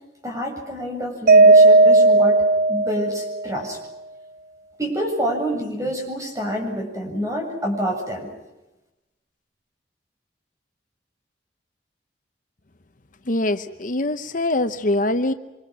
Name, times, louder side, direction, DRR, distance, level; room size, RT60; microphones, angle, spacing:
voice 1, 0.2-2.4 2.7-3.8 4.8-8.3, equal, 20° right, 2 dB, 7.5 m, -27 dB
Mallet percussion, 1.3-3.5, right 3 dB, 55° right, 0.9 m, -14 dB
voice 2, 13.3-15.3, left 2 dB, 50° left, 9 dB, 1.0 m, -23 dB
28.5 x 25.5 x 6.2 m, 1.0 s
head